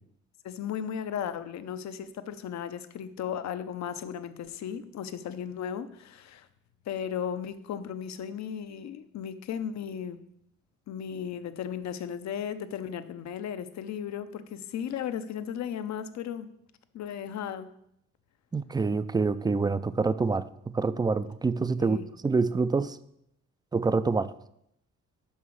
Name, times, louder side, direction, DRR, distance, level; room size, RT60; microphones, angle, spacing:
voice 1, 0.4-6.5 6.9-10.2 10.9-16.5 16.9-17.7 21.8-22.0, left 8 dB, 65° left, 11 dB, 0.7 m, -35 dB
voice 2, 18.5-23.0 23.7-24.3, right 4 dB, 15° right, 14 dB, 0.3 m, -26 dB
5.8 x 5.6 x 6.3 m, 0.75 s
cardioid pair, 90°, 30 cm